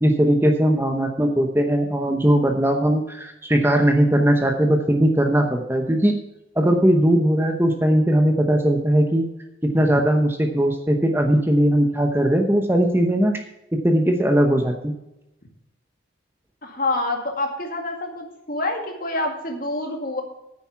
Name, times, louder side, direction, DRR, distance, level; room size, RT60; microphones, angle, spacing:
voice 1, 0.0-6.1 6.6-9.3 9.6-13.4 13.7-14.9, right 1 dB, 10° right, 4 dB, 0.9 m, -19 dB
voice 2, 16.6-20.2, left 2 dB, 45° left, 2 dB, 2.2 m, -27 dB
9.7 x 9.1 x 5.8 m, 0.89 s
head